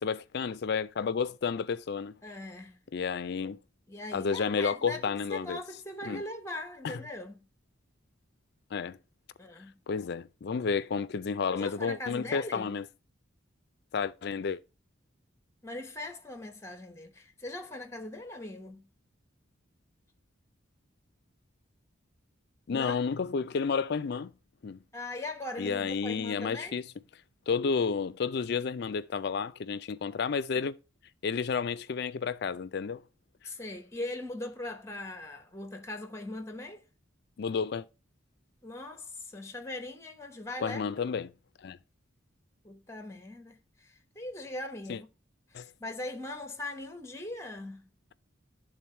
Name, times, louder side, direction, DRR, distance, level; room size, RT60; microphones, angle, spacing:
voice 1, 0.0-2.1 2.9-3.6 4.1-5.6 6.0-6.2 6.8-7.0 8.7-9.0 9.9-12.9 13.9-14.6 22.7-24.3 24.6-24.8 25.6-26.9 27.5-30.7 31.2-33.0 37.4-37.8 40.6-41.3 41.6-41.8 44.9-45.0 45.5-45.7, left 5 dB, 55° left, 0.4 m, -31 dB
voice 2, 2.2-2.8 3.9-5.0 5.3-7.4 9.4-9.7 11.5-12.8 15.6-18.8 22.7-23.0 24.9-26.8 33.4-36.8 38.6-40.8 42.6-45.1 45.5-47.9, left 2 dB, 15° left, 0.9 m, -40 dB
10.0 x 3.8 x 4.3 m
head